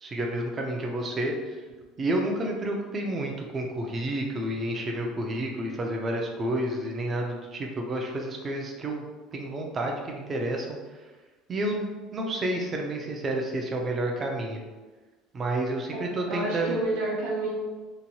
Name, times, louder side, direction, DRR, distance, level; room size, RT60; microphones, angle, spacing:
voice 1, 0.0-1.4 2.0-9.0 9.3-10.8 11.5-11.9 12.1-14.6 15.3-16.8, right 1 dB, 20° right, 1 dB, 0.3 m, -30 dB
voice 2, 15.9-17.5, right 2 dB, 75° right, -4 dB, 0.6 m, -30 dB
2.8 x 2.2 x 2.7 m, 1.3 s
cardioid pair, 165°, 0 cm